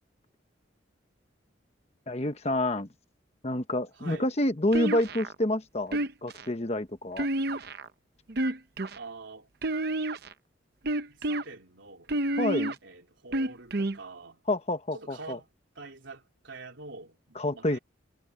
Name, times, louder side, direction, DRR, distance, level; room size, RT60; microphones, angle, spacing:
voice 1, 2.1-2.9 3.4-7.3 12.4-12.8 14.5-15.4 17.3-17.8, left 1 dB, 30° left, 1.1 m, -28 dB
voice 2, 3.9-4.2 8.9-9.5 10.9-12.1 12.8-14.4 14.9-15.5 15.7-17.8, right 3 dB, 70° right, 3.3 m, -46 dB
sound 1, 4.7-5.3 5.9-6.5 7.2-7.9 8.3-9.0 9.6-10.3 10.9-11.4 12.1-12.7 13.3-14.0, right 1 dB, 50° right, 0.8 m, -29 dB
head